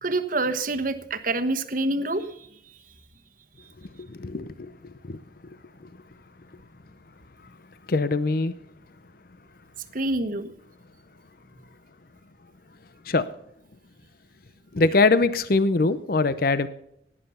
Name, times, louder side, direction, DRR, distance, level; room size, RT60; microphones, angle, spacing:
voice 1, 0.0-2.5 9.9-10.5 14.8-14.9, right 2 dB, 45° right, 11 dB, 1.2 m, -27 dB
voice 2, 4.0-4.7 5.0-5.2 7.9-8.5 13.1-13.3 14.7-16.7, left 3 dB, 50° left, 14 dB, 0.6 m, -22 dB
17.5 x 10.0 x 5.6 m, 0.78 s
head